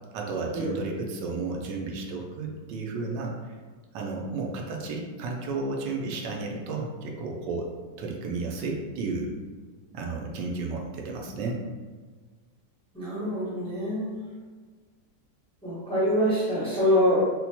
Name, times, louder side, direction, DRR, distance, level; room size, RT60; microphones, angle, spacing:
voice 1, 0.1-3.4 3.9-7.7 8.0-9.3 9.9-11.6, right 3 dB, 85° right, 0 dB, 1.3 m, -32 dB
voice 2, 12.9-14.2 15.6-17.3, equal, 5° left, -9 dB, 0.7 m, -25 dB
4.1 x 2.1 x 2.8 m, 1.5 s
omnidirectional pair, 1.8 m